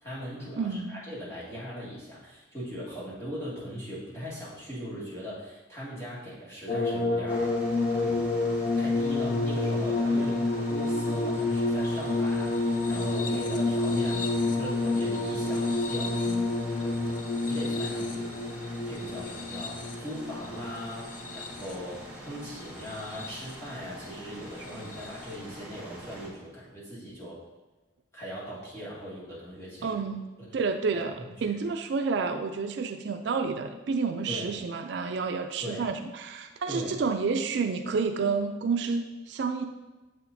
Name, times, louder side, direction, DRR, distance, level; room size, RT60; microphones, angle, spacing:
voice 1, 0.0-7.5 7.9-8.2 8.8-17.0 17.4-18.3 18.9-27.4 28.1-30.0 30.4-30.5 30.9-31.5 34.3-34.5 35.6-35.9 36.7-37.0, equal, 15° left, -9 dB, 2.0 m, -40 dB
voice 2, 0.6-1.0 10.1-10.3 16.3-16.6 29.8-30.3 30.5-39.6, right 4 dB, 60° right, 6 dB, 0.3 m, -30 dB
sound 1, 6.7-21.9 22.8-23.5 24.9-25.1, left 2 dB, 45° left, 0.5 m, -29 dB
sound 2, 7.3-26.3, right 1 dB, 10° right, 1.0 m, -45 dB
7.4 x 5.9 x 2.6 m, 1.2 s
head